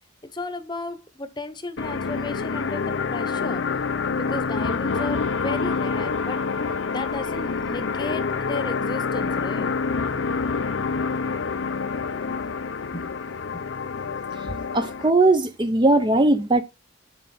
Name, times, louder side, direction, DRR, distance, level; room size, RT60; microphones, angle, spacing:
voice 1, 0.3-3.6 4.2-6.4 6.9-9.7 12.9-13.1 13.5-13.6, left 2 dB, 20° left, 0.9 m, -34 dB
sound 1, 1.8-15.1, left 5 dB, 60° left, 0.5 m, -27 dB
voice 2, 14.7-16.6, right 2 dB, 20° right, 0.5 m, -19 dB
7.5 x 7.3 x 4.2 m
head